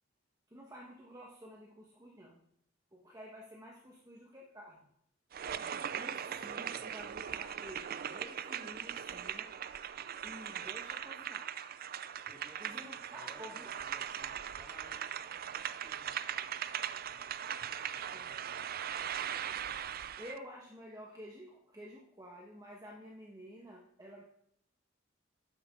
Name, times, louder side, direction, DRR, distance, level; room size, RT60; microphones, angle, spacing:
voice 1, 0.5-2.4 2.9-4.9 5.9-9.5 10.2-11.5 12.6-13.7 18.1-18.3 20.2-24.2, equal, 20° right, -2 dB, 1.4 m, -51 dB
sound 1, 5.3-20.4, right 9 dB, 50° right, 0.4 m, -40 dB
voice 2, 6.3-7.1 12.3-17.3 17.6-18.7, equal, ahead, -2 dB, 2.6 m, -60 dB
13.0 x 9.8 x 3.8 m, 0.72 s
head